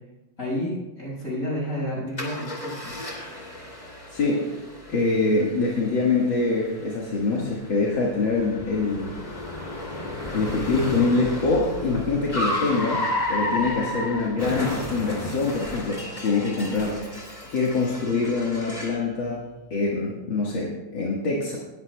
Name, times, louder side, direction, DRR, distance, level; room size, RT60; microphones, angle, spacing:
voice 1, 0.4-3.0, equal, 40° left, -4 dB, 6.2 m, -30 dB
Car, 2.2-19.1, left 1 dB, 20° left, 2.7 m, -33 dB
voice 2, 4.1-4.6 4.9-9.1 10.3-13.0 13.3-17.0 17.5-19.4 19.7-21.6, left 3 dB, 70° left, -4 dB, 2.4 m, -24 dB
20.0 x 14.5 x 2.3 m, 1.0 s
omnidirectional pair, 2.2 m